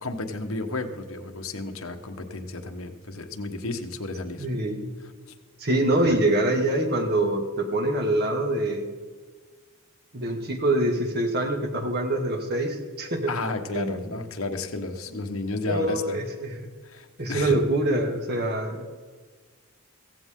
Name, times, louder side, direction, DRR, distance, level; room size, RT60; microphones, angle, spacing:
voice 1, 0.0-4.5 5.9-6.1 13.3-16.2 16.8-17.6, left 2 dB, 75° left, 6 dB, 1.3 m, -32 dB
voice 2, 4.4-4.9 5.6-8.9 10.1-13.3 13.7-14.0 15.7-16.7 17.2-18.9, right 1 dB, 50° right, 3 dB, 2.1 m, -25 dB
16.0 x 16.0 x 3.8 m, 1.4 s
head